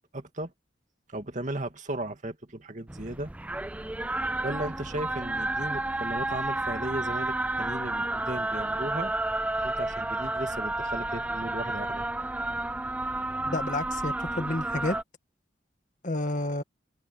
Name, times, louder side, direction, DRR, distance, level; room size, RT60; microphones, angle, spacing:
voice 1, 0.1-0.5 1.1-3.3 4.4-9.1 9.6-12.1, right 1 dB, 40° right, 2.3 m, -36 dB
sound 1, 2.9-15.0, right 2 dB, 10° right, 0.4 m, -31 dB
voice 2, 13.4-15.0 16.0-16.6, left 2 dB, 45° left, 1.8 m, -30 dB
head